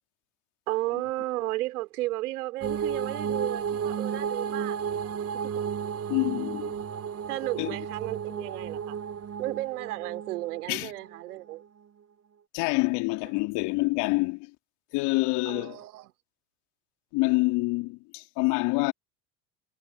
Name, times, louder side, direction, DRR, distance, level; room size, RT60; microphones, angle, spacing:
voice 1, 0.7-4.8 5.3-5.5 7.3-9.0 9.4-11.6 15.5-16.1, right 18 dB, 75° right, 3.9 m, -33 dB
sound 1, 2.6-11.3, right 7 dB, 30° right, 1.5 m, -33 dB
voice 2, 6.1-6.8 7.6-7.8 10.7-10.9 12.5-14.5 14.9-15.8 17.1-18.9, left 25 dB, 60° left, 3.0 m, -26 dB
hypercardioid pair, 80°, 45 cm